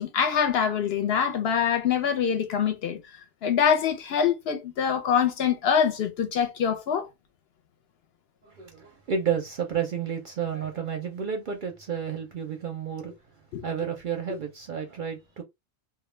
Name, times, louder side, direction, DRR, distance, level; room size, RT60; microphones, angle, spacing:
voice 1, 0.0-3.0 3.4-7.1 13.5-13.7, left 7 dB, 65° left, 0.7 m, -24 dB
voice 2, 8.4-13.1 13.6-15.4, right 7 dB, 55° right, 0.6 m, -31 dB
2.2 x 2.1 x 3.1 m
omnidirectional pair, 1.2 m